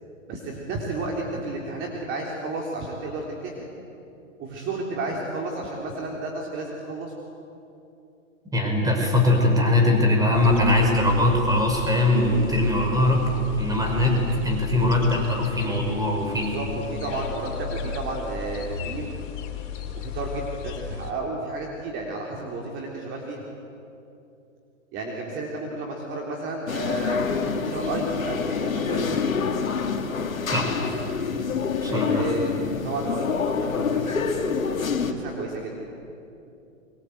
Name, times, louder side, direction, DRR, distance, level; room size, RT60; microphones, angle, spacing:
voice 1, 0.3-3.7 4.4-7.1 16.4-19.2 20.0-23.4 24.9-29.2 31.9-32.6 32.8-34.2 35.0-35.9, right 2 dB, 30° right, -1 dB, 3.7 m, -32 dB
voice 2, 8.5-13.2 13.6-16.6 30.5-30.8 31.8-32.3, left 1 dB, 10° right, 2 dB, 5.5 m, -21 dB
sound 1, 10.3-21.1, left 6 dB, 55° left, 4.1 m, -34 dB
sound 2, 26.7-35.1, left 5 dB, 85° left, 2.6 m, -27 dB
28.0 x 24.0 x 8.1 m, 2.8 s
hypercardioid pair, 125°, 40 cm